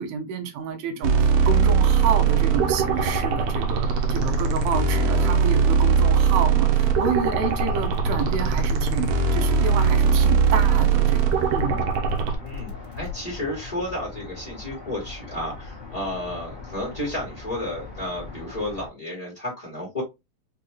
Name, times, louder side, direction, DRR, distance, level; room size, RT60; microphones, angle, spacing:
voice 1, 0.0-11.8, right 6 dB, 90° right, 2.7 m, -29 dB
sound 1, 1.0-18.9, left 3 dB, 20° left, 0.6 m, -40 dB
sound 2, 1.0-12.4, right 6 dB, 75° right, 1.7 m, -20 dB
voice 2, 4.9-5.4 12.4-12.7 13.0-20.0, left 1 dB, 80° left, 0.3 m, -32 dB
sound 3, 6.9-13.2, left 6 dB, 60° left, 1.4 m, -36 dB
5.7 x 2.4 x 2.9 m
omnidirectional pair, 4.1 m